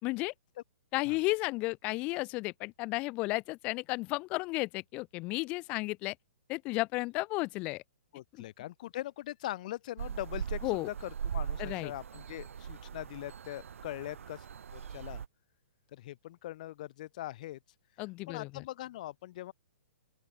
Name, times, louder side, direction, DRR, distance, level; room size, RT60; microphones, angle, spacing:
voice 1, 0.0-0.3 0.9-6.1 6.5-7.8 10.6-10.9 11.6-11.9 18.0-18.6, left 23 dB, 15° left, 0.4 m, -33 dB
voice 2, 8.1-14.5 14.7-15.2 15.9-17.6 18.3-19.5, left 15 dB, 35° left, 1.5 m, -41 dB
sound 1, 10.0-15.3, right 7 dB, 80° right, 1.0 m, -40 dB
open air
hypercardioid pair, 170°, 7 cm